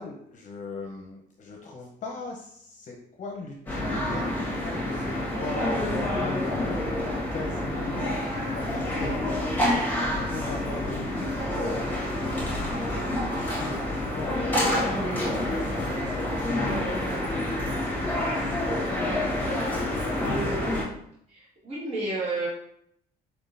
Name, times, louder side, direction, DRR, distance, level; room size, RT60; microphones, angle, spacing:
voice 1, 0.0-13.1 13.5-20.6, left 3 dB, 45° left, 1 dB, 0.7 m, -40 dB
sound 1, 3.7-20.8, left 1 dB, 10° left, 1.4 m, -28 dB
voice 2, 21.3-22.5, right 2 dB, 35° right, -8 dB, 1.6 m, -31 dB
4.4 x 3.6 x 2.6 m, 0.71 s
cardioid pair, 110°, 17 cm